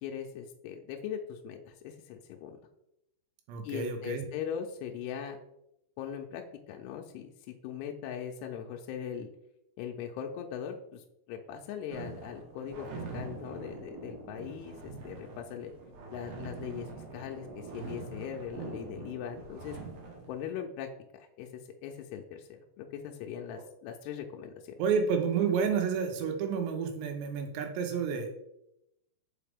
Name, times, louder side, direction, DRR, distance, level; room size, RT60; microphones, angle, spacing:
voice 1, 0.0-2.6 3.6-5.4 6.0-9.3 9.8-12.9 13.1-15.7 16.1-19.8 20.3-24.8, left 8 dB, 80° left, 2 dB, 2.5 m, -40 dB
voice 2, 3.5-4.2 24.8-28.3, right 6 dB, 85° right, 5 dB, 3.1 m, -30 dB
sound 1, 11.9-20.4, right 4 dB, 65° right, 2.2 m, -44 dB
5.6 x 5.1 x 3.4 m, 0.83 s
omnidirectional pair, 4.9 m